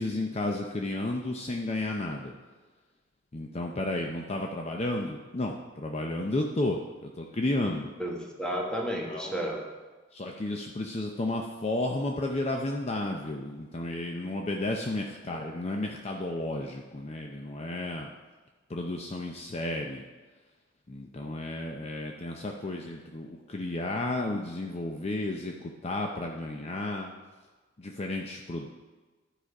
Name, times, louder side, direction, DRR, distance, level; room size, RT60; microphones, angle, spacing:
voice 1, 0.0-2.3 3.3-7.9 9.0-9.4 10.1-18.1 18.7-20.0 20.9-27.1 27.8-28.7, left 2 dB, 35° left, 1 dB, 0.6 m, -32 dB
voice 2, 8.0-9.6 15.3-15.4, equal, 5° left, 0 dB, 1.2 m, -32 dB
11.5 x 5.0 x 4.9 m, 1.3 s
head